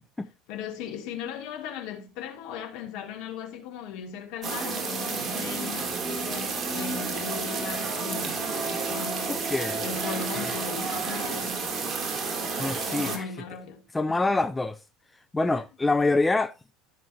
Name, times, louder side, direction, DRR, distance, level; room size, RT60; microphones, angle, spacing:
voice 1, 0.5-5.9 6.3-8.5 8.9-9.5 9.8-11.7 12.9-13.8 14.1-14.4 15.4-15.6, left 7 dB, 60° left, 2.9 m, -38 dB
sound 1, 4.4-13.2, right 4 dB, 35° right, 3.1 m, -30 dB
voice 2, 9.3-9.9 12.6-13.3 13.9-14.8 15.3-16.5, left 3 dB, 15° left, 0.6 m, -25 dB
14.5 x 6.8 x 2.9 m
hypercardioid pair, 70°, 0 cm